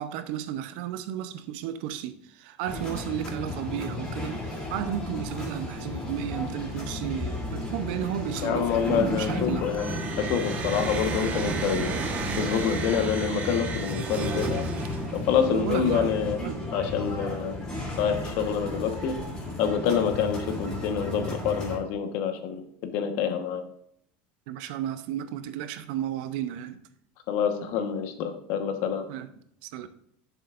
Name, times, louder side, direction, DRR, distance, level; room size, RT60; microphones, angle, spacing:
voice 1, 0.0-9.7 15.5-16.2 16.4-16.6 24.5-26.8 29.1-29.3 29.6-29.9, right 10 dB, 65° right, 0.8 m, -33 dB
sound 1, 2.7-21.8, left 2 dB, 15° left, 3.0 m, -34 dB
voice 2, 8.4-12.0 12.4-14.7 15.1-16.4 16.7-17.6 18.0-19.2 19.6-22.7 22.9-23.6 27.3-29.0, left 7 dB, 55° left, 1.3 m, -27 dB
sound 2, 9.7-15.3, right 4 dB, 30° right, 1.3 m, -33 dB
11.5 x 7.1 x 2.5 m
cardioid pair, 160°, 5 cm